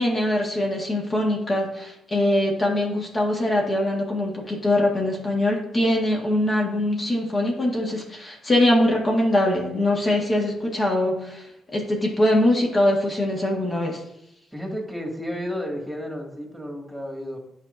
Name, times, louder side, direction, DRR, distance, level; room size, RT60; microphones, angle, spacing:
voice 1, 0.0-11.5 11.7-14.0, left 1 dB, 40° left, -2 dB, 1.8 m, -22 dB
voice 2, 14.5-17.4, equal, ahead, -1 dB, 2.2 m, -32 dB
10.0 x 4.8 x 2.7 m, 0.84 s
hypercardioid pair, 45°, 0 cm